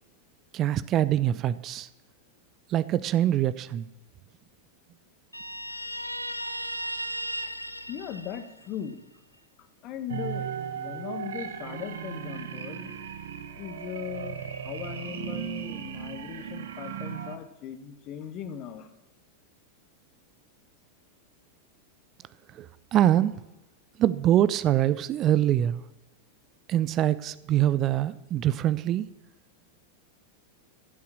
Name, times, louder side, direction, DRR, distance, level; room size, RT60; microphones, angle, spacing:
voice 1, 0.5-1.9 2.7-3.9 22.5-23.3 24.0-25.8 26.7-29.1, right 12 dB, 35° right, 17 dB, 0.5 m, -24 dB
Guitar, 5.3-8.9, right 1 dB, 90° left, 0.7 m, -35 dB
voice 2, 7.9-9.0 9.8-10.5 10.7-12.9 13.5-18.9, left 8 dB, 35° left, 9 dB, 1.5 m, -38 dB
sound 1, 10.1-17.4, right 8 dB, 60° right, 1.1 m, -36 dB
14.5 x 8.5 x 7.3 m, 0.94 s
figure-of-eight pair, 90°, 0 cm